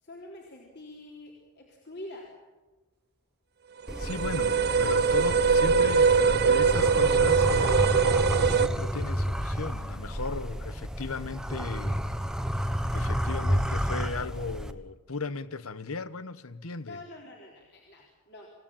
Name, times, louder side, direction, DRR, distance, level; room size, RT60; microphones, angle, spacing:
voice 1, 0.0-2.3 16.9-18.5, left 1 dB, 50° left, 4.0 m, -45 dB
sound 1, 3.9-14.7, equal, 5° right, 1.1 m, -31 dB
sound 2, 3.9-8.7, right 5 dB, 45° right, 0.8 m, -22 dB
voice 2, 4.0-7.5 7.8-8.1 8.4-12.0 12.9-17.0, left 4 dB, 70° left, 1.0 m, -36 dB
27.0 x 17.0 x 8.9 m
head